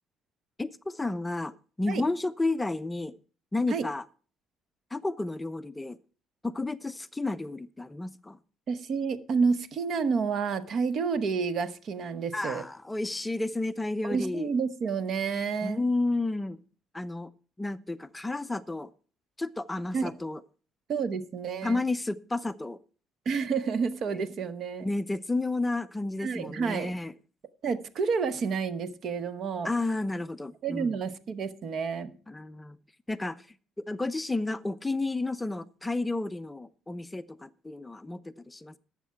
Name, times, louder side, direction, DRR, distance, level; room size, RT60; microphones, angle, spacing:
voice 1, 0.6-3.1 3.5-4.0 4.9-6.0 6.4-8.4 12.3-14.5 15.6-16.6 16.9-17.3 17.6-18.9 19.4-20.4 21.6-22.8 24.8-27.1 29.6-30.9 32.3-32.8 33.1-33.5 33.8-38.8, left 2 dB, 10° left, 0.4 m, -31 dB
voice 2, 8.7-12.6 14.0-15.8 19.9-20.1 20.9-21.8 23.2-24.9 26.2-26.9 27.6-29.7 30.6-32.1, right 5 dB, 55° right, 1.0 m, -29 dB
12.0 x 7.3 x 5.7 m
cardioid pair, 105°, 0 cm